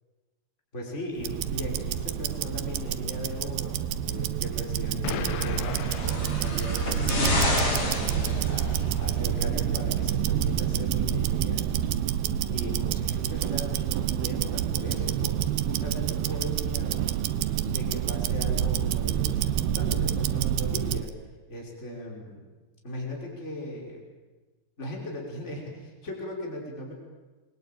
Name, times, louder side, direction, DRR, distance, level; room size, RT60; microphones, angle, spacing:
voice 1, 0.7-7.4 7.9-12.0 12.5-17.1 17.6-21.1 21.5-22.5 22.8-24.0 24.8-26.9, left 1 dB, 15° left, -1 dB, 5.4 m, -38 dB
Tick-tock, 1.2-21.1, right 10 dB, 90° right, 3.0 m, -28 dB
Explosion, 5.0-7.2, left 9 dB, 85° left, 3.3 m, -36 dB
sound 1, 5.6-9.0 10.0-10.1, left 2 dB, 40° left, 5.4 m, -29 dB
27.5 x 22.5 x 9.2 m, 1.3 s
omnidirectional pair, 4.4 m